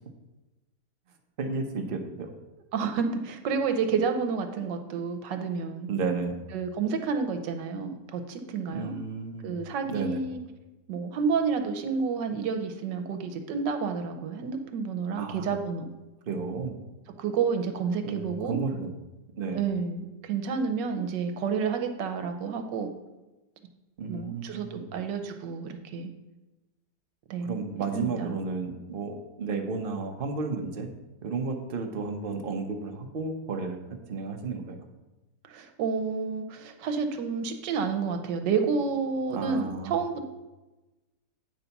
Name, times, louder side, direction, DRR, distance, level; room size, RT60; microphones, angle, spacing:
voice 1, 1.4-2.3 5.9-6.3 8.7-9.6 9.9-10.2 15.2-15.5 16.3-16.8 18.0-18.9 19.4-19.6 24.0-24.9 27.4-30.9 31.2-34.8 39.3-39.9, right 4 dB, 45° right, 5 dB, 0.7 m, -32 dB
voice 2, 2.7-5.9 6.5-9.0 9.4-10.4 10.9-15.9 17.2-18.6 19.5-22.9 24.1-26.1 27.3-27.5 27.9-28.3 35.4-40.2, right 5 dB, 80° right, 7 dB, 1.4 m, -30 dB
8.9 x 4.0 x 5.8 m, 1.1 s
omnidirectional pair, 1.9 m